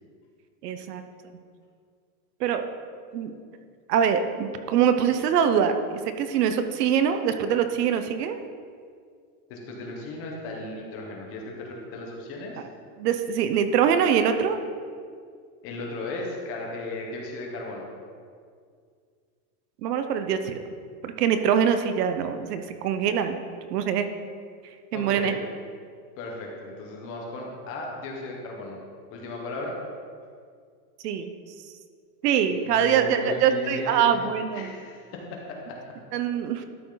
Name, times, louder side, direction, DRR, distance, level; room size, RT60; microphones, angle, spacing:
voice 1, 0.6-1.0 2.4-2.7 3.1-3.4 3.9-8.4 13.0-14.6 19.8-20.6 21.0-23.4 23.7-24.1 24.9-25.3 31.0-31.3 32.2-34.7 36.1-36.7, right 8 dB, 85° right, 8 dB, 1.0 m, -24 dB
voice 2, 9.5-12.6 15.6-17.8 24.9-25.4 26.2-28.8 29.1-29.8 32.5-35.8, left 2 dB, 30° left, -1 dB, 1.3 m, -36 dB
12.5 x 6.2 x 4.0 m, 2.1 s
supercardioid pair, 175°, 46 cm